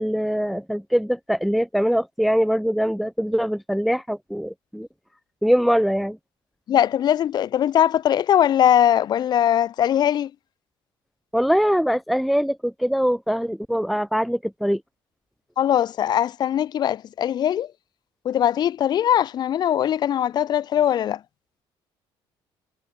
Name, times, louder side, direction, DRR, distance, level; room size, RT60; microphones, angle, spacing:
voice 1, 0.0-4.9 5.4-6.2 11.3-14.8, equal, ahead, 0.4 m, -22 dB
voice 2, 6.7-10.3 15.6-17.7 18.3-21.2, left 10 dB, 45° left, 3.7 m, -20 dB
cardioid pair, 155°, 10 cm